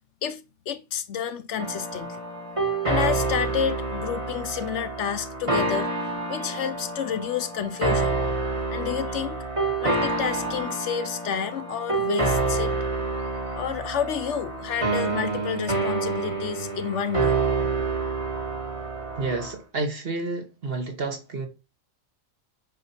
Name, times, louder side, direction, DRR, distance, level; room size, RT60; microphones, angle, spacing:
voice 1, 0.2-2.2 2.8-8.2 8.7-9.4 9.8-12.8 13.6-17.4, left 8 dB, 70° left, 0.9 m, -30 dB
sound 1, 1.6-19.5, right 3 dB, 25° right, 1.6 m, -28 dB
voice 2, 19.2-21.5, right 3 dB, 50° right, 1.7 m, -30 dB
8.3 x 5.4 x 2.9 m
omnidirectional pair, 1.3 m